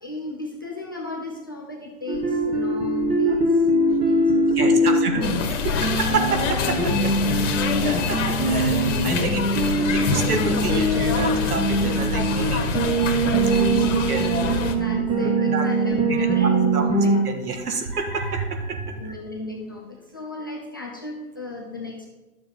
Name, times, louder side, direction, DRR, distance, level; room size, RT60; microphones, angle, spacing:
voice 1, 0.0-3.5 3.8-6.0 7.3-7.7 14.3-17.1 19.0-19.8 20.1-22.1, left 3 dB, 15° left, -1 dB, 0.3 m, -35 dB
sound 1, 2.1-17.2, right 2 dB, 10° right, 1.1 m, -22 dB
voice 2, 4.5-5.2 6.0-7.2 7.8-13.2 13.5-14.4 15.2-15.7 16.1-16.9 17.3-19.1, right 4 dB, 80° right, 5 dB, 1.7 m, -29 dB
sound 2, 5.2-14.8, left 5 dB, 55° left, 1.5 m, -26 dB
11.0 x 6.9 x 3.9 m, 1.1 s
hypercardioid pair, 140°, 44 cm